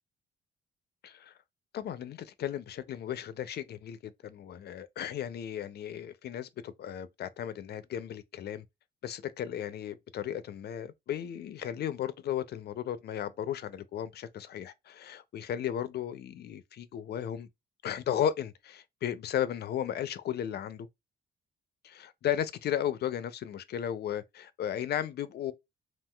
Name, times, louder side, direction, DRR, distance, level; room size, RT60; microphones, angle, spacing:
voice 1, 1.0-1.3 1.7-8.6 9.0-17.5 17.8-20.9 21.8-25.5, left 10 dB, 55° left, 0.4 m, -35 dB
3.7 x 2.4 x 2.2 m
cardioid pair, 90°, 20 cm